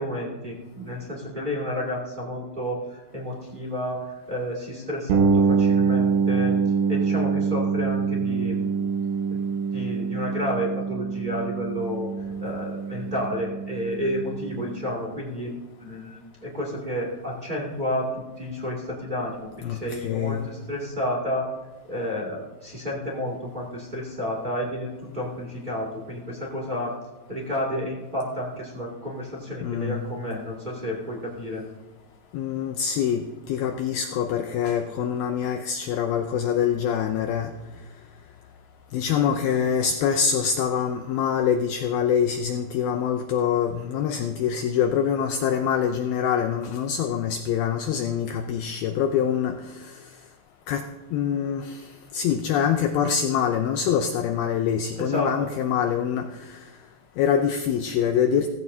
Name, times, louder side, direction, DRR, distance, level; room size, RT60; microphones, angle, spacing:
voice 1, 0.0-6.5 6.9-8.7 9.3-9.4 9.7-12.1 12.4-21.5 21.9-24.9 25.1-26.9 27.3-31.6 54.9-55.5, equal, 20° right, -3 dB, 1.4 m, -31 dB
sound 1, 5.1-14.8, right 5 dB, 85° right, 3.4 m, -25 dB
voice 2, 19.6-20.5 29.6-30.1 32.3-37.5 38.9-50.1 50.7-50.8 51.1-56.6 57.2-58.5, left 8 dB, 90° left, 6 dB, 2.1 m, -25 dB
18.0 x 15.0 x 2.8 m, 1.1 s
omnidirectional pair, 5.2 m